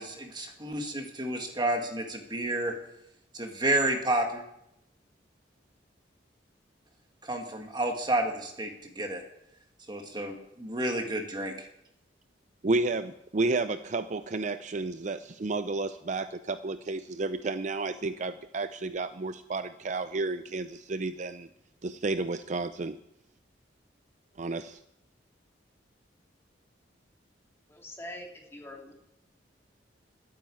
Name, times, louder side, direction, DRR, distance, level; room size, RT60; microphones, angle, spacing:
voice 1, 0.0-2.8 3.3-4.4 7.2-9.2 9.9-11.7, right 1 dB, 25° right, 3 dB, 1.9 m, -30 dB
voice 2, 12.6-21.5 21.8-23.0 24.4-24.8, right 3 dB, 40° right, 11 dB, 0.5 m, -31 dB
voice 3, 27.7-28.9, left 1 dB, 15° left, 0 dB, 2.9 m, -43 dB
12.5 x 9.6 x 8.5 m, 0.79 s
head